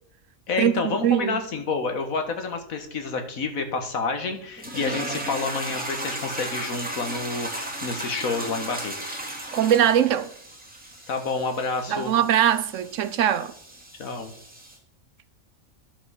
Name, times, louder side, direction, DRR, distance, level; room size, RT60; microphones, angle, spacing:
voice 1, 0.5-9.2 11.1-12.1 14.0-14.3, left 4 dB, 75° left, 1.9 m, -29 dB
voice 2, 1.0-1.4 9.5-10.3 11.9-13.5, right 10 dB, 70° right, 0.9 m, -21 dB
sound 1, 4.6-14.8, right 1 dB, 5° right, 2.7 m, -36 dB
11.0 x 5.5 x 6.3 m
omnidirectional pair, 1.5 m